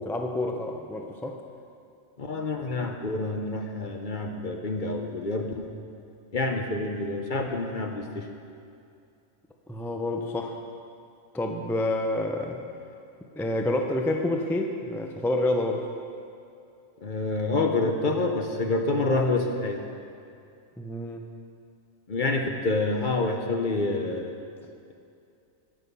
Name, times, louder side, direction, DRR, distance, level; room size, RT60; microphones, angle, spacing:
voice 1, 0.0-1.4 9.7-10.6 11.3-12.6 13.4-15.9 20.8-21.2, left 1 dB, 5° left, 3 dB, 0.5 m, -28 dB
voice 2, 2.2-5.7 6.3-8.3 17.0-19.8 22.1-24.4, left 2 dB, 45° left, 3 dB, 0.9 m, -27 dB
18.0 x 6.3 x 5.4 m, 2.5 s
omnidirectional pair, 1.3 m